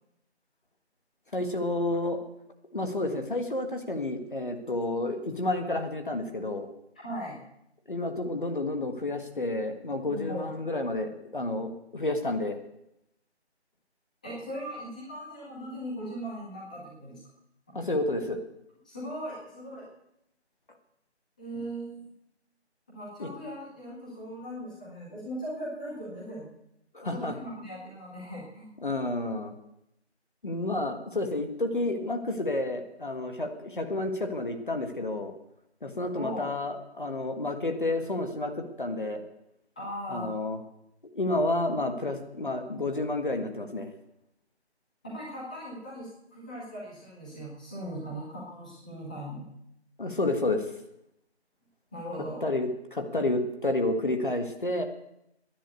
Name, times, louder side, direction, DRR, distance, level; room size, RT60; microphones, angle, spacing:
voice 1, 1.3-2.2 2.7-6.7 7.9-12.6 17.8-18.4 23.2-23.3 26.9-27.3 28.8-29.5 30.4-35.3 35.8-39.2 40.1-40.6 41.2-43.9 50.0-50.7 52.4-54.8, left 2 dB, 45° left, 5 dB, 1.7 m, -30 dB
voice 2, 7.0-7.4 10.1-10.6 14.2-17.2 18.8-19.9 21.4-22.1 22.9-26.5 27.0-28.7 36.2-36.5 39.8-40.3 45.0-49.4 51.9-52.4, equal, 5° left, -7 dB, 1.8 m, -39 dB
14.5 x 10.5 x 8.4 m, 0.81 s
figure-of-eight pair, 175°, 34 cm